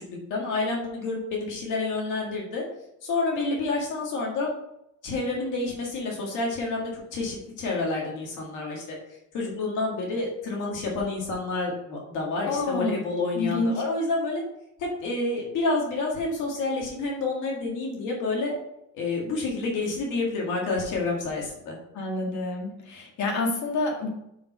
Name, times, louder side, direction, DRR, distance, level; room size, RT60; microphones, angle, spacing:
voice 1, 0.1-2.6 3.0-4.5 5.0-9.0 9.3-14.4 14.8-18.6 18.9-21.8, left 3 dB, 90° left, -1 dB, 1.8 m, -29 dB
voice 2, 12.5-13.0 13.3-13.7 21.9-24.1, left 3 dB, 70° left, 0 dB, 1.9 m, -28 dB
5.7 x 5.1 x 6.1 m, 0.80 s
cardioid pair, 90°, 30 cm